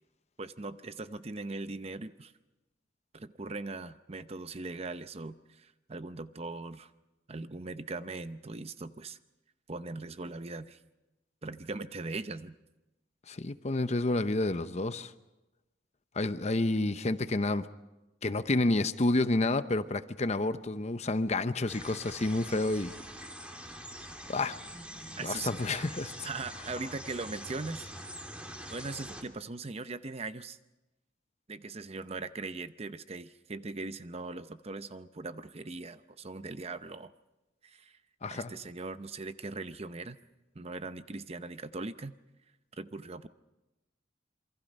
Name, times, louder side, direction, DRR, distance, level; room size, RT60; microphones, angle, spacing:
voice 1, 0.4-2.3 3.1-6.9 7.3-9.2 9.7-10.8 11.4-12.6 25.2-25.9 26.2-27.9 28.7-30.6 31.5-37.1 37.6-38.0 38.2-40.2 40.5-42.1 42.8-43.3, right 3 dB, 35° right, 12 dB, 0.7 m, -40 dB
voice 2, 13.3-15.1 16.2-17.7 18.2-22.9 24.3-24.6 25.2-26.3 38.2-38.5, left 2 dB, 40° left, 12 dB, 0.8 m, -29 dB
sound 1, 21.7-29.2, equal, 5° right, 2.3 m, -44 dB
27.0 x 24.0 x 5.4 m, 1.0 s
head